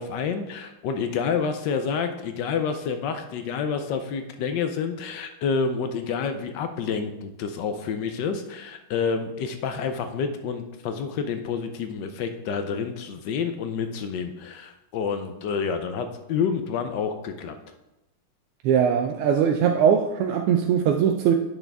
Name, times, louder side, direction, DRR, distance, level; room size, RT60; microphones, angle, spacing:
voice 1, 0.0-17.6, left 6 dB, 70° left, 8 dB, 1.1 m, -28 dB
voice 2, 18.6-21.3, right 8 dB, 90° right, 3 dB, 1.5 m, -21 dB
8.9 x 6.1 x 3.4 m, 0.94 s
omnidirectional pair, 2.4 m